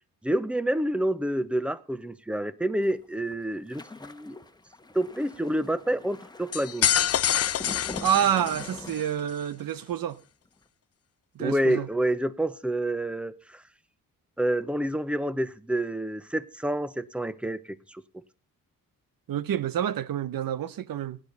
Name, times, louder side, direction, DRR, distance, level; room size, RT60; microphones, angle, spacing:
voice 1, 0.2-4.4 4.9-6.9 11.4-13.6 14.4-17.6 17.9-18.0, right 1 dB, 5° right, 0.9 m, -28 dB
sound 1, 2.8-9.6 9.9-10.2 10.4-10.6, left 3 dB, 10° left, 1.3 m, -44 dB
sound 2, 6.5-9.1, left 10 dB, 45° left, 0.6 m, -26 dB
voice 2, 8.0-10.2 11.3-11.9 19.3-21.2, right 10 dB, 80° right, 1.0 m, -28 dB
18.0 x 10.5 x 4.0 m
cardioid pair, 100°, 34 cm